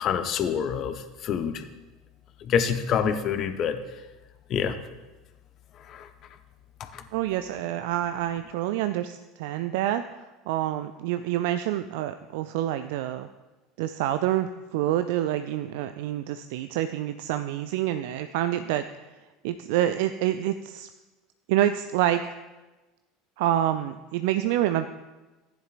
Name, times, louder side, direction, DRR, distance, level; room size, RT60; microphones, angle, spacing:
voice 1, 0.0-1.6 2.4-3.8 4.5-4.7 5.9-6.1 6.9-7.0, left 7 dB, 45° left, 9 dB, 0.8 m, -26 dB
voice 2, 7.1-13.3 13.8-18.9 19.4-20.9 21.5-22.3 23.4-24.9, right 12 dB, 60° right, 10 dB, 0.3 m, -27 dB
15.5 x 10.5 x 2.5 m, 1.2 s
figure-of-eight pair, 70°, 0 cm